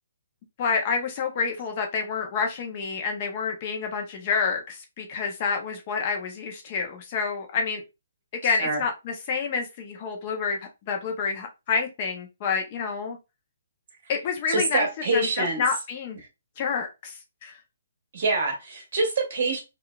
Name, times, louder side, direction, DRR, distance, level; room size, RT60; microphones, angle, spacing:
voice 1, 0.6-7.8 8.4-13.2 14.1-14.9 15.1-16.2 16.6-17.6, left 5 dB, 30° left, 0.5 m, -28 dB
voice 2, 8.4-8.8 14.5-15.6 18.1-19.6, right 3 dB, 45° right, 1.4 m, -25 dB
3.7 x 2.3 x 2.2 m
hypercardioid pair, 160°, 0 cm